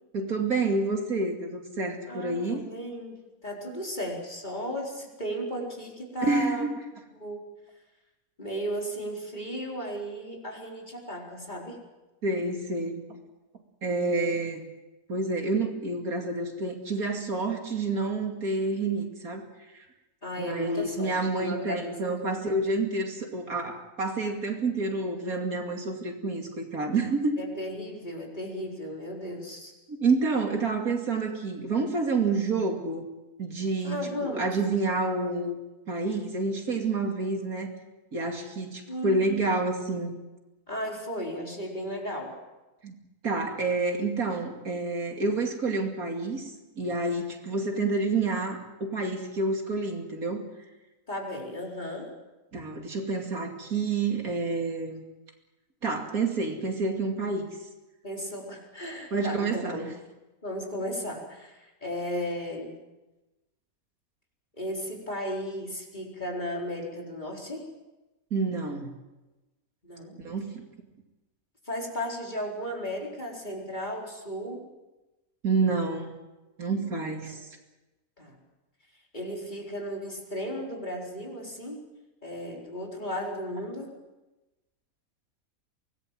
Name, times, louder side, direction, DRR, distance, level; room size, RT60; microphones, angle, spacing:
voice 1, 0.1-2.6 6.2-6.7 12.2-13.0 13.8-14.6 15.1-19.4 20.4-27.4 29.9-33.0 33.4-35.6 35.9-37.7 38.1-40.2 42.8-42.9 43.2-46.5 46.8-50.4 52.5-55.0 55.8-57.5 59.1-59.8 68.3-68.9 70.2-70.6 75.4-76.1 76.6-77.4, right 3 dB, 75° right, 3 dB, 3.1 m, -28 dB
voice 2, 2.1-6.7 7.1-7.4 8.4-11.8 20.2-22.2 27.4-29.7 33.8-34.4 38.9-39.3 40.7-42.3 51.1-52.1 58.0-59.9 60.4-62.7 64.6-67.7 69.8-70.2 71.7-74.7 77.2-77.4 78.2-78.4 79.1-81.9 82.2-83.9, equal, 30° left, -1 dB, 4.6 m, -35 dB
24.5 x 19.0 x 7.6 m, 1.1 s
omnidirectional pair, 1.6 m